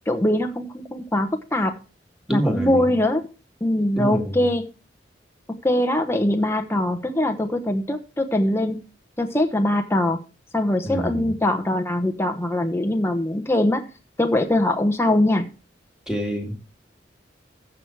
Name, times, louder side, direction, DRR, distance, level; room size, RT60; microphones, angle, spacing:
voice 1, 0.1-1.8 2.3-3.2 3.6-4.7 5.6-8.8 9.2-10.2 10.5-13.8 14.2-15.5, left 1 dB, 15° left, 5 dB, 1.0 m, -22 dB
voice 2, 2.3-2.9 4.0-4.4 10.8-11.3 16.1-16.7, right 1 dB, ahead, 1 dB, 2.5 m, -27 dB
14.5 x 6.3 x 4.6 m, 0.33 s
head